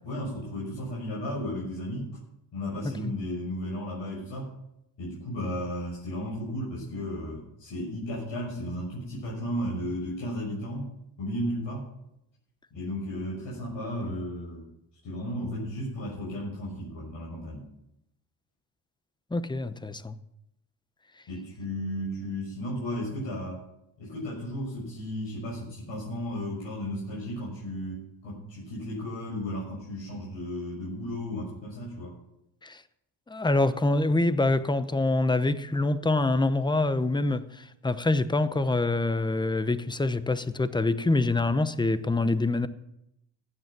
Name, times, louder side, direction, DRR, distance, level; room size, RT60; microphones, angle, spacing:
voice 1, 0.0-2.1 2.5-4.5 5.0-10.9 11.2-11.8 12.7-14.7 15.0-17.6 21.3-23.6 24.0-32.1, equal, 65° left, 6.6 m, -34 dB
voice 2, 19.3-20.2 32.6-32.8 33.3-42.7, left 2 dB, 10° left, 0.8 m, -25 dB
15.0 x 9.6 x 6.1 m
cardioid pair, 85°, 48 cm